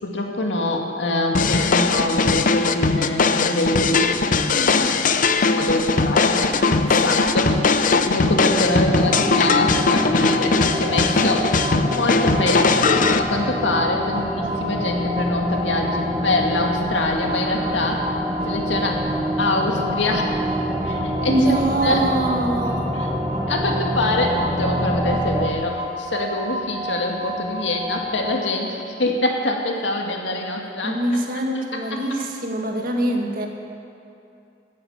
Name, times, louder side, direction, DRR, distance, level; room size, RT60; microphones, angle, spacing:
voice 1, 0.0-5.0 5.6-6.4 6.9-11.5 11.9-18.1 18.5-19.0 19.4-20.3 20.8-22.0 23.0-23.1 23.5-31.0 31.7-32.2, left 1 dB, 75° left, 1 dB, 2.0 m, -25 dB
sound 1, 1.3-13.2, left 4 dB, 45° left, 0.6 m, -19 dB
voice 2, 5.6-6.9 21.3-22.9 30.8-33.5, right 1 dB, 50° right, 1 dB, 1.9 m, -24 dB
sound 2, 8.5-25.5, right 1 dB, 10° right, 1.1 m, -27 dB
sound 3, 8.9-28.4, left 2 dB, 30° right, 2.3 m, -31 dB
14.5 x 9.7 x 8.7 m, 2.7 s
head